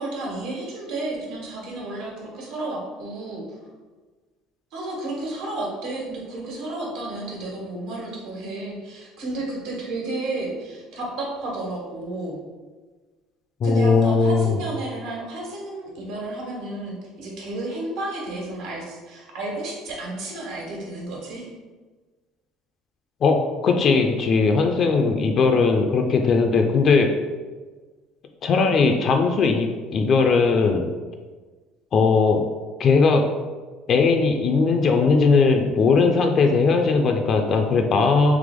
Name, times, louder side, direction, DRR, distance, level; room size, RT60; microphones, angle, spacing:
voice 1, 0.0-3.4 4.7-12.4 13.6-21.5, right 2 dB, 75° right, -2 dB, 1.4 m, -32 dB
voice 2, 13.6-14.6 23.2-27.1 28.4-30.9 31.9-32.4 32.8-33.3 33.9-38.4, left 4 dB, 40° left, 4 dB, 0.4 m, -19 dB
3.4 x 3.2 x 3.6 m, 1.3 s
cardioid pair, 135°, 0 cm